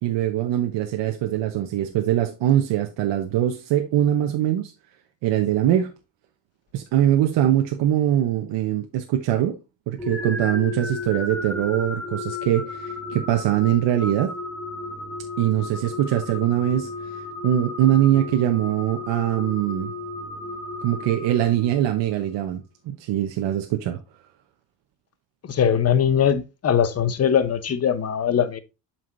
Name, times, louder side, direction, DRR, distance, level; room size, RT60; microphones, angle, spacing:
voice 1, 0.0-4.7 5.2-5.9 6.7-9.6 9.9-14.3 15.4-19.9 20.8-24.0, right 12 dB, 80° right, 1.0 m, -22 dB
sound 1, 10.0-22.0, left 3 dB, 5° left, 1.4 m, -33 dB
voice 2, 25.5-28.6, left 8 dB, 35° left, 1.0 m, -21 dB
7.7 x 5.9 x 2.6 m
cardioid pair, 115°, 43 cm